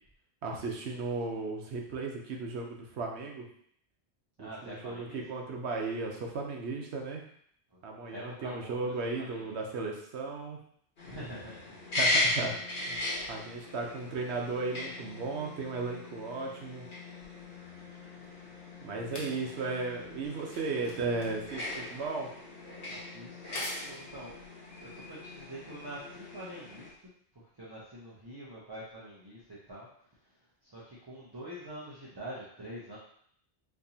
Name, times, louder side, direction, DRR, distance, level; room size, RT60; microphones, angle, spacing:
voice 1, 0.4-3.5 4.4-7.2 7.8-10.6 12.0-16.9 18.8-22.3, right 3 dB, 75° right, 1 dB, 1.0 m, -35 dB
voice 2, 4.4-5.2 7.7-7.8 8.1-9.6 11.0-11.8 17.5-17.9 19.1-19.3 22.9-23.5 23.8-24.4 24.8-29.9 30.6-33.0, right 1 dB, 25° right, -7 dB, 0.6 m, -45 dB
sound 1, 11.0-26.9, left 2 dB, 65° left, 1.3 m, -37 dB
sound 2, 17.2-25.8 26.7-26.8, left 1 dB, 85° left, 1.2 m, -48 dB
4.3 x 2.8 x 2.7 m, 0.66 s
omnidirectional pair, 1.1 m